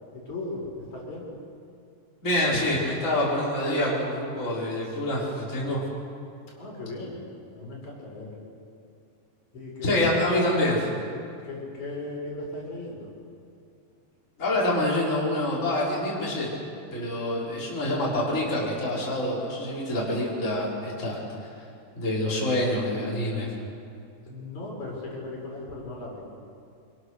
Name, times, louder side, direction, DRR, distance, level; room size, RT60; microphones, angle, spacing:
voice 1, 0.1-1.3 6.6-7.2 7.6-8.3 9.5-10.3 11.4-13.1 24.3-26.2, left 2 dB, 50° left, -4 dB, 7.0 m, -37 dB
voice 2, 2.2-5.8 9.8-10.9 14.4-16.5 16.9-21.2 21.9-23.5, left 1 dB, 20° left, -6 dB, 5.1 m, -26 dB
28.0 x 26.0 x 6.6 m, 2.4 s
omnidirectional pair, 4.2 m